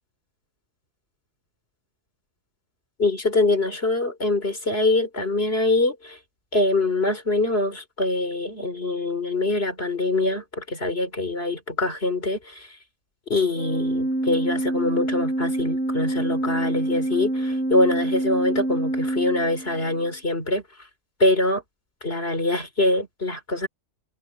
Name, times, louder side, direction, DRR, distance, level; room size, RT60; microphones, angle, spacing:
voice 1, 3.0-6.2 6.5-12.7 13.3-20.6 21.2-21.6 22.0-23.7, left 2 dB, 50° left, 4.0 m, -24 dB
Organ, 13.5-20.1, right 1 dB, 65° right, 4.4 m, -26 dB
omnidirectional pair, 1.3 m